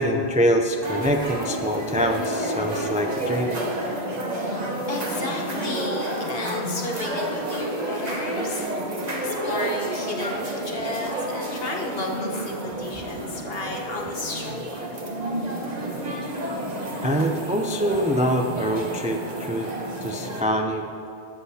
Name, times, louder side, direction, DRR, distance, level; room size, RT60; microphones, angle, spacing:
voice 1, 0.0-3.6 10.2-10.4 11.1-11.2 17.0-19.7 20.0-20.9, equal, 15° right, 3 dB, 0.3 m, -24 dB
sound 1, 0.8-20.4, right 1 dB, 40° right, 1.2 m, -30 dB
voice 2, 4.3-8.7 9.2-14.9 20.2-20.3, left 2 dB, 70° left, 0 dB, 1.4 m, -33 dB
21.0 x 7.8 x 2.8 m, 2.7 s
omnidirectional pair, 1.0 m